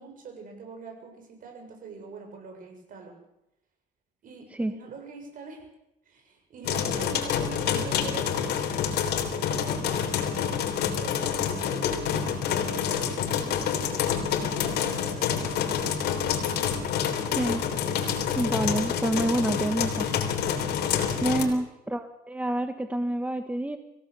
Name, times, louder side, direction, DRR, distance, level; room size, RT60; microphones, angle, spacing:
voice 1, 0.0-3.2 4.2-5.7 6.1-8.5 9.0-17.2 21.1-21.5, right 4 dB, 55° right, 3 dB, 7.1 m, -44 dB
sound 1, 6.6-21.4, left 8 dB, 75° left, 3.3 m, -27 dB
voice 2, 17.4-17.7 18.3-20.1 21.2-23.8, right 1 dB, 10° right, 8 dB, 1.2 m, -28 dB
25.0 x 16.5 x 6.9 m, 0.85 s
cardioid pair, 110°, 17 cm